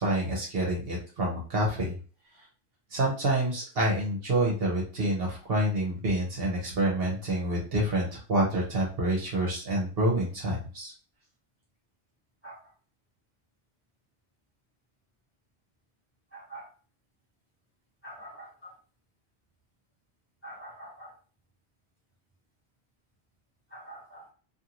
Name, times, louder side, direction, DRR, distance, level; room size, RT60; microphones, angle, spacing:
voice 1, 0.0-1.9 2.9-10.9, right 1 dB, 60° right, -2 dB, 1.0 m, -27 dB
voice 2, 16.3-16.6 18.0-18.5 20.4-21.1 23.7-24.2, right 1 dB, 10° left, -7 dB, 1.3 m, -44 dB
2.6 x 2.6 x 2.8 m, 0.38 s
omnidirectional pair, 1.2 m